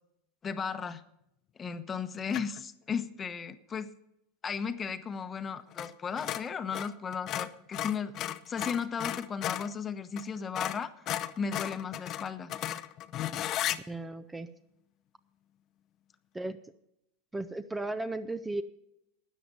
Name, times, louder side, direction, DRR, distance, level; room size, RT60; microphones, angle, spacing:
voice 1, 0.4-1.0 1.6-3.9 4.4-12.5, left 6 dB, 25° left, 10 dB, 1.0 m, -35 dB
sound 1, 2.3-2.6 5.7-5.9 6.2-9.7 10.2-10.3 10.5-13.8, left 12 dB, 45° left, 0.6 m, -35 dB
voice 2, 13.9-14.5 16.3-16.6 17.3-18.6, right 2 dB, 10° right, 12 dB, 0.6 m, -35 dB
13.0 x 9.3 x 5.4 m, 0.81 s
hypercardioid pair, 105°, 0 cm